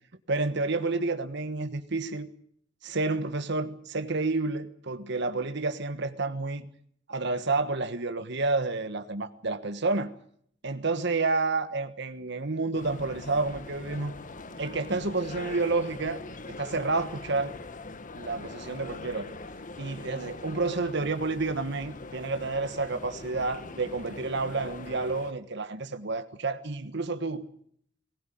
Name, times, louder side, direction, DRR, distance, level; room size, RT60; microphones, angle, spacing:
voice 1, 0.3-2.3 2.8-6.7 7.1-10.1 10.6-14.1 14.6-16.2 16.5-17.5 18.2-19.3 19.8-27.5, right 3 dB, 65° right, 1.4 m, -30 dB
sound 1, 12.7-25.3, left 2 dB, 45° left, 1.3 m, -42 dB
20.0 x 18.5 x 9.2 m
head